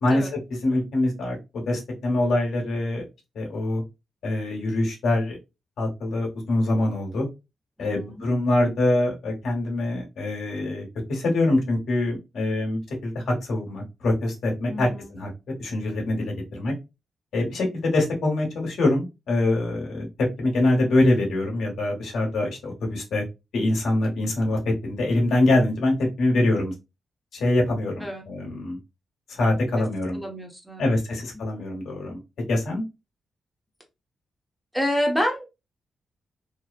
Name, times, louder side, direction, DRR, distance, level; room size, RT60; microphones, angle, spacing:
voice 1, 0.0-3.0 3.3-3.8 4.2-5.4 5.8-7.3 7.8-15.3 15.6-16.7 17.3-23.2 23.5-26.7 27.3-28.8 29.3-30.2 30.8-32.2 32.5-32.8, left 2 dB, 90° left, 0 dB, 1.0 m, -24 dB
voice 2, 7.8-8.2 14.7-15.1 28.0-28.2 29.8-29.9 30.1-30.9 34.7-35.4, equal, ahead, 1 dB, 0.7 m, -28 dB
2.7 x 2.0 x 2.4 m, 0.24 s
wide cardioid pair, 125°, 0 cm